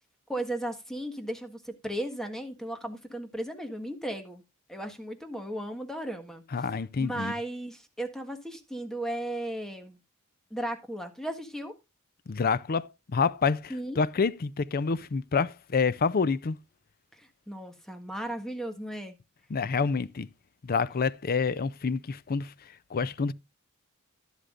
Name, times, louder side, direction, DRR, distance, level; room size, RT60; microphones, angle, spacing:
voice 1, 0.3-4.4 4.7-6.4 7.0-10.0 10.5-11.7 13.7-14.0 17.1-19.2, right 1 dB, ahead, 1.6 m, -35 dB
voice 2, 6.5-7.3 12.3-16.6 19.5-20.3 20.6-22.5 22.9-23.3, left 5 dB, 45° left, 0.5 m, -28 dB
11.5 x 11.5 x 2.5 m
head